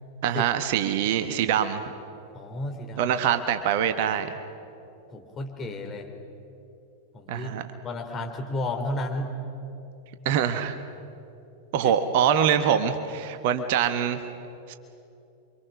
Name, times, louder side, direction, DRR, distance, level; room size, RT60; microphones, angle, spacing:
voice 1, 0.2-1.8 3.0-4.3 7.3-7.6 10.2-10.8 11.7-14.2 14.7-14.8, right 9 dB, 50° right, 9 dB, 1.2 m, -24 dB
voice 2, 2.3-3.1 5.1-6.1 7.1-9.3 11.8-11.9, left 2 dB, 25° left, 2 dB, 3.4 m, -33 dB
28.5 x 24.5 x 6.0 m, 2.8 s
figure-of-eight pair, 90°, 0 cm